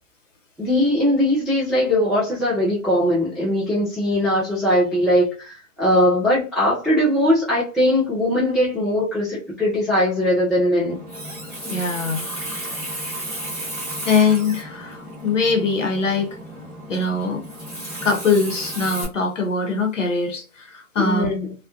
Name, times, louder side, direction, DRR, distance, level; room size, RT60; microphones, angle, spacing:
voice 1, 0.6-11.0 21.0-21.5, left 1 dB, ahead, 0.3 m, -20 dB
Water tap faucet, 10.9-19.0, right 1 dB, 15° right, 0.8 m, -33 dB
voice 2, 11.7-12.3 14.0-16.4 16.9-17.4 18.0-21.3, left 4 dB, 60° left, 0.7 m, -22 dB
2.3 x 2.1 x 2.6 m
hypercardioid pair, 170°, 43 cm